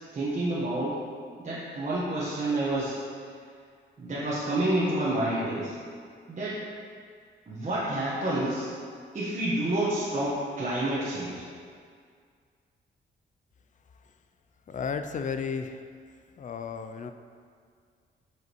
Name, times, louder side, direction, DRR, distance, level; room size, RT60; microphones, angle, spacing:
voice 1, 0.1-1.0 1.4-3.0 4.0-5.7 6.3-6.6 7.5-8.7 9.1-11.5, right 1 dB, 40° right, -9 dB, 1.3 m, -29 dB
voice 2, 14.7-15.9 16.4-17.1, left 6 dB, 40° left, 8 dB, 0.4 m, -33 dB
8.0 x 5.0 x 3.1 m, 2.1 s
cardioid pair, 95°, 19 cm